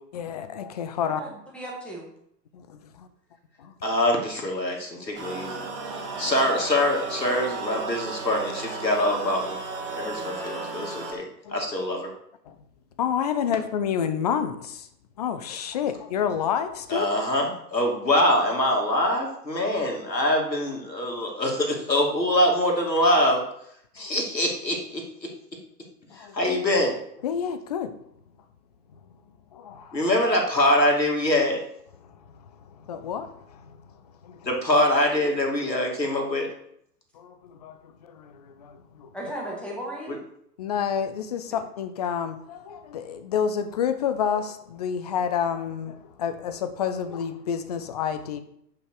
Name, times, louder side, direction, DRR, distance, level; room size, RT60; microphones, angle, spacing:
voice 1, 0.1-1.2 2.5-3.1 3.6-3.7 11.4-11.6 12.5-12.6 13.0-14.9 15.2-17.1 24.0-24.1 26.1-26.3 27.2-28.0 29.5-30.0 32.0-32.4 32.7-33.8 34.2-34.5 37.1-39.1 40.6-48.4, left 8 dB, 25° left, 0.5 m, -29 dB
voice 2, 1.0-2.0 39.1-40.2, right 1 dB, ahead, 2.1 m, -35 dB
voice 3, 3.8-5.7 6.2-9.6 9.9-11.2 11.5-12.1 16.9-23.4 24.0-25.3 26.2-27.0 29.9-31.6 34.5-36.5, left 1 dB, 90° left, 2.5 m, -24 dB
sound 1, 5.1-11.1, right 3 dB, 20° right, 2.1 m, -34 dB
9.2 x 5.4 x 4.7 m
figure-of-eight pair, 115°, 49 cm